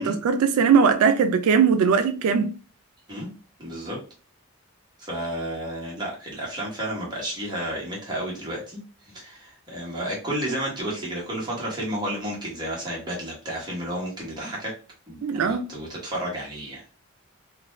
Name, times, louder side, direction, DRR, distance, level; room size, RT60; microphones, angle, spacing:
voice 1, 0.0-2.5 15.2-15.6, right 6 dB, 90° right, 0.3 m, -20 dB
voice 2, 3.6-4.0 5.0-14.7 15.1-16.8, right 1 dB, 20° right, 1.1 m, -32 dB
2.5 x 2.2 x 3.0 m
head